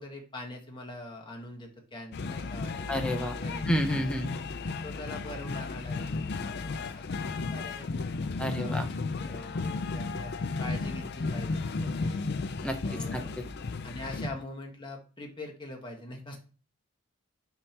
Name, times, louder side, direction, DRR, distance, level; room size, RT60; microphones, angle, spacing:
voice 1, 0.0-3.7 4.1-4.6 4.8-7.8 8.4-8.9 9.2-12.2 12.8-13.3 13.8-16.4, left 1 dB, 20° left, 1 dB, 1.3 m, -43 dB
sound 1, 2.1-14.3, left 3 dB, 50° left, 0.4 m, -34 dB
voice 2, 2.9-3.3 3.7-4.3 8.4-8.9 12.6-12.8 13.1-13.2, equal, 5° left, 4 dB, 0.7 m, -29 dB
9.6 x 3.4 x 2.9 m, 0.37 s
head